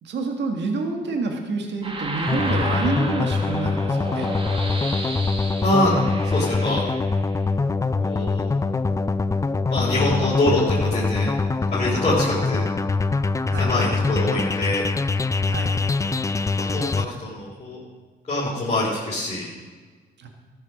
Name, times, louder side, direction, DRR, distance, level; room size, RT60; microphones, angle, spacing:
voice 1, 0.0-4.3 13.5-13.7 15.5-15.8 20.2-20.3, right 3 dB, 60° right, 3 dB, 1.7 m, -28 dB
sound 1, 1.8-7.5, right 2 dB, 25° right, 1.5 m, -33 dB
sound 2, 2.3-17.0, left 3 dB, 15° left, 0.4 m, -24 dB
voice 2, 5.6-5.9 6.2-6.8 8.0-8.4 9.7-11.3 11.7-12.6 13.6-14.8 16.7-17.8 18.2-19.5, left 1 dB, 35° left, -7 dB, 3.5 m, -24 dB
13.5 x 7.3 x 6.3 m, 1.4 s
cardioid pair, 90°, 20 cm